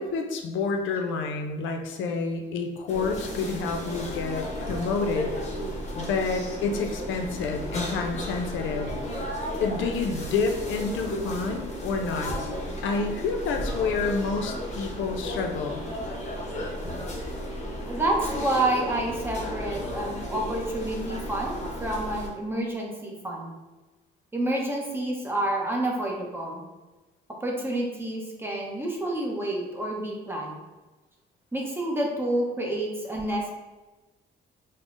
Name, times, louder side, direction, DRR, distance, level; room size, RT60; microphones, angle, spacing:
voice 1, 0.0-5.3 6.0-8.9 9.6-12.3 12.8-15.9, left 4 dB, 75° left, 4 dB, 0.4 m, -29 dB
sound 1, 2.9-22.3, equal, 35° left, 0.8 m, -34 dB
voice 2, 17.9-23.5 24.3-26.6 27.4-30.6 31.5-33.5, right 1 dB, 10° right, -2 dB, 0.7 m, -29 dB
5.2 x 2.0 x 2.5 m, 1.2 s
cardioid pair, 90°, 20 cm